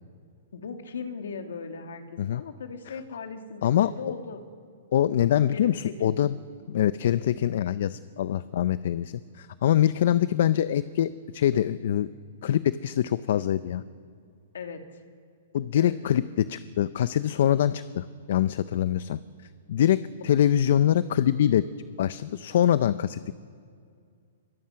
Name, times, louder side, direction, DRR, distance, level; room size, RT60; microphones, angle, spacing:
voice 1, 0.5-4.4 5.5-6.2 14.5-14.8 15.8-16.2, left 5 dB, 80° left, 5 dB, 2.3 m, -38 dB
voice 2, 4.9-6.3 6.7-12.1 12.4-13.8 15.5-19.2 19.7-21.7 22.0-23.3, left 10 dB, 60° left, 15 dB, 0.6 m, -24 dB
23.5 x 21.0 x 5.9 m, 2.3 s
hypercardioid pair, 150°, 0 cm